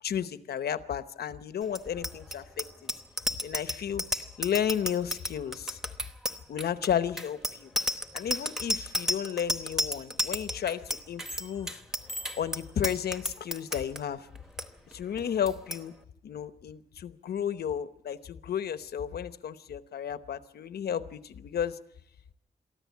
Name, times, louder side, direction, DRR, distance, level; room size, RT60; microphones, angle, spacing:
voice 1, 0.0-2.9 3.4-4.0 4.4-5.8 6.5-7.7 8.1-11.8 12.4-14.3 14.9-15.9 16.2-21.8, left 9 dB, 85° left, 12 dB, 1.0 m, -33 dB
Bicycle bell, 1.7-14.0 14.4-14.6 14.9-15.2 15.5-15.8, equal, 5° right, 1.0 m, -32 dB
23.5 x 14.0 x 8.3 m, 0.82 s
wide cardioid pair, 145°, 16 cm